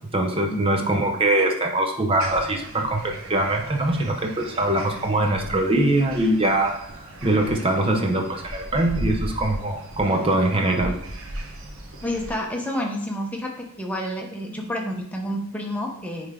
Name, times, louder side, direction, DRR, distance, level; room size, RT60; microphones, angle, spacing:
voice 1, 0.1-6.9 7.2-10.9, right 1 dB, 25° right, 3 dB, 0.7 m, -22 dB
sound 1, 2.2-12.3, right 1 dB, 70° right, 1.0 m, -37 dB
voice 2, 12.0-16.3, left 1 dB, 5° left, 0 dB, 0.8 m, -29 dB
9.4 x 3.3 x 3.7 m, 0.70 s
head